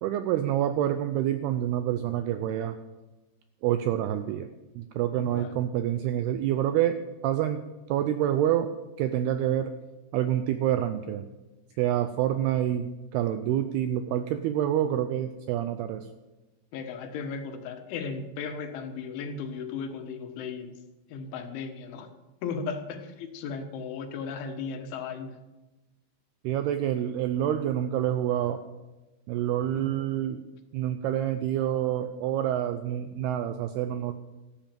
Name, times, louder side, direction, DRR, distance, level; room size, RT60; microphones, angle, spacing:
voice 1, 0.0-2.8 3.6-4.5 4.8-7.6 7.9-8.7 9.0-9.7 10.1-11.2 11.8-16.1 26.4-28.6 29.3-30.4 30.7-34.1, right 11 dB, 80° right, 9 dB, 2.3 m, -27 dB
voice 2, 5.2-5.5 16.7-20.7 21.1-22.1 22.4-25.4 29.7-29.9, left 5 dB, 90° left, 6 dB, 3.8 m, -36 dB
14.0 x 12.5 x 7.5 m, 1.1 s
omnidirectional pair, 5.3 m